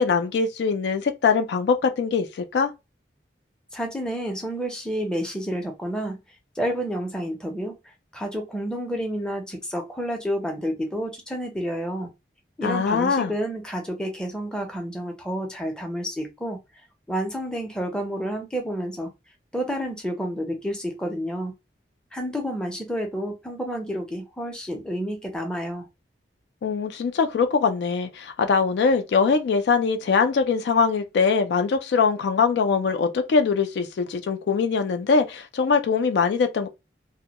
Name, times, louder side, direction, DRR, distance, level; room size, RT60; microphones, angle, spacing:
voice 1, 0.0-2.7 12.6-13.3 26.6-36.7, left 5 dB, 75° left, 0.3 m, -22 dB
voice 2, 3.7-6.2 6.6-7.7 8.1-12.1 12.6-16.6 17.1-19.1 19.5-21.5 22.1-25.9, equal, 5° left, 0.5 m, -29 dB
2.2 x 2.1 x 2.8 m
head